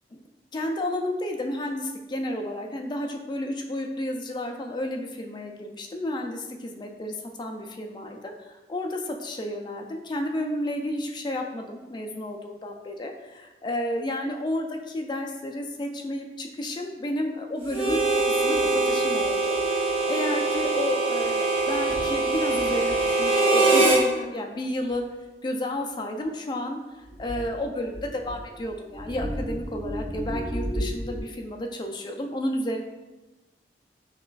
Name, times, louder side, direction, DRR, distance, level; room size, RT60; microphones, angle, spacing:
voice 1, 0.5-18.1 18.4-18.6 18.9-25.0 25.4-32.8, left 1 dB, 25° left, 3 dB, 0.3 m, -32 dB
sound 1, 17.6-20.0 20.5-20.7 21.2-21.3 21.6-23.2 23.9-24.0 24.9-25.0 27.0-31.2, equal, 5° left, 1.3 m, -36 dB
Harmonica, 17.7-24.0, right 2 dB, 35° right, 0.7 m, -23 dB
5.7 x 2.3 x 2.4 m, 1.2 s
head